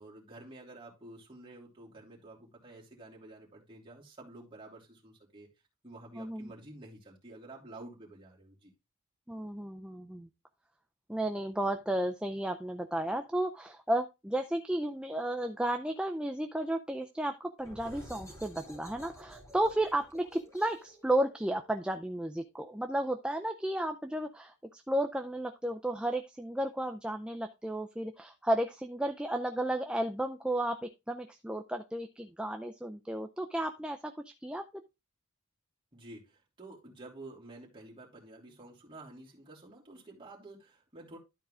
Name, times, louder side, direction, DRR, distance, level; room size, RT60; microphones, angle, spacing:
voice 1, 0.0-5.5 5.8-8.7 35.9-41.2, right 2 dB, 25° right, 3.1 m, -50 dB
voice 2, 6.2-6.5 9.3-10.3 11.1-34.6, right 1 dB, 5° right, 0.5 m, -33 dB
sound 1, 17.6-23.0, equal, 15° left, 3.1 m, -52 dB
12.0 x 4.6 x 3.7 m
head